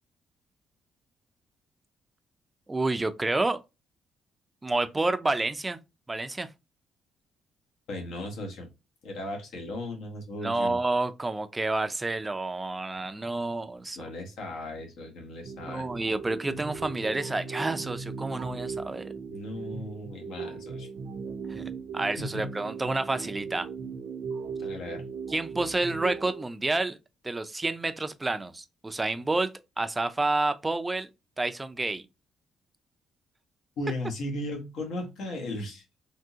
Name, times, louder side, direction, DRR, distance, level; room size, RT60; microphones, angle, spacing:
voice 1, 2.7-3.6 4.6-5.8 6.1-6.5 10.4-14.0 15.6-19.1 21.5-21.6 21.9-23.7 25.3-27.0 27.2-31.1 31.4-32.0, right 2 dB, 20° right, 0.4 m, -29 dB
voice 2, 7.9-8.7 9.0-10.8 13.9-15.9 19.3-20.9 22.2-22.5 24.6-25.0 33.8-35.8, left 1 dB, 80° left, 1.2 m, -36 dB
sound 1, 15.4-26.4, right 5 dB, 80° right, 0.6 m, -38 dB
3.6 x 2.6 x 2.8 m
cardioid pair, 90°, 0 cm